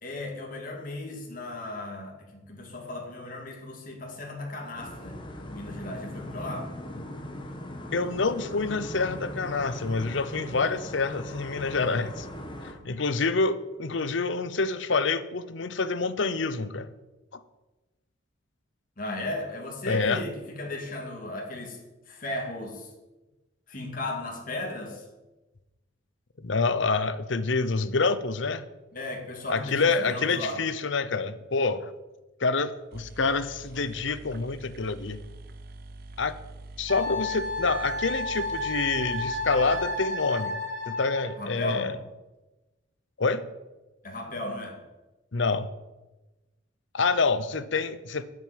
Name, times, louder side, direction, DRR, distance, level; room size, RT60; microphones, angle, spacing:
voice 1, 0.0-5.2 5.5-6.7 19.0-21.8 22.1-22.9 23.7-25.1 28.9-30.6 41.4-41.9 44.0-44.8, left 1 dB, 45° left, 0 dB, 2.5 m, -35 dB
sound 1, 4.8-12.7, left 1 dB, 25° left, 1.5 m, -39 dB
voice 2, 7.9-12.3 12.6-16.9 17.3-17.4 19.9-20.2 26.4-28.6 29.5-31.9 32.4-35.2 36.2-36.3 36.8-40.6 40.9-41.9 43.2-43.4 45.3-45.7 46.9-48.2, left 4 dB, 70° left, 13 dB, 0.8 m, -27 dB
sound 2, 32.6-32.7 32.9-40.7, right 2 dB, 50° right, 0.7 m, -45 dB
Wind instrument woodwind instrument, 36.9-41.3, left 1 dB, 85° right, 3.7 m, -32 dB
9.3 x 7.7 x 9.1 m, 1.1 s
head